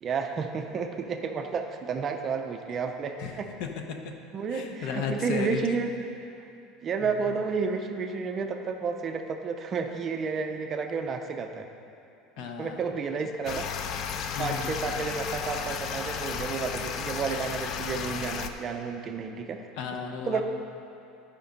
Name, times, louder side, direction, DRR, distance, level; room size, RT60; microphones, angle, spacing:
voice 1, 0.0-3.5 4.3-5.9 6.8-11.7 12.4-13.6 14.4-19.6 20.3-20.4, right 5 dB, 25° right, 5 dB, 0.5 m, -31 dB
voice 2, 3.2-4.1 4.5-5.8 7.0-7.1 12.4-12.9 13.2-13.3 14.3-14.8 19.8-20.4, left 6 dB, 55° left, 4 dB, 0.8 m, -35 dB
sound 1, 13.4-18.5, left 7 dB, 35° left, 0.4 m, -34 dB
12.5 x 5.1 x 5.2 m, 2.7 s
cardioid pair, 170°, 0 cm